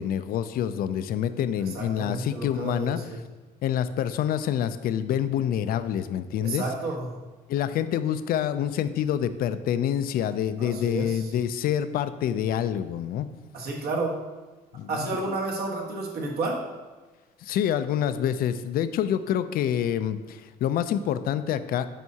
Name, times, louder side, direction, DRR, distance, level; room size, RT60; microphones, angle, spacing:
voice 1, 0.0-3.0 3.6-6.6 7.5-13.3 14.7-14.9 15.3-15.4 17.4-21.9, left 10 dB, 60° left, 12 dB, 0.4 m, -27 dB
voice 2, 1.7-3.2 6.4-7.1 10.6-11.3 13.5-14.2 14.9-16.6, right 2 dB, 65° right, -1 dB, 1.5 m, -31 dB
9.1 x 5.4 x 2.8 m, 1.3 s
cardioid pair, 110°, 17 cm